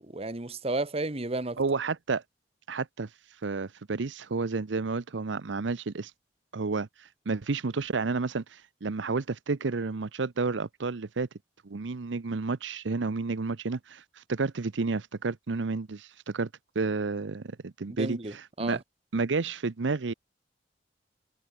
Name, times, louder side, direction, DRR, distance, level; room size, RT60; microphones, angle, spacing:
voice 1, 0.1-1.6 18.0-18.8, right 2 dB, 35° right, 1.3 m, -32 dB
voice 2, 1.6-2.2 2.7-3.1 3.4-6.1 6.5-11.3 11.6-16.5 16.8-18.8 19.1-20.1, right 4 dB, 85° right, 0.7 m, -31 dB
head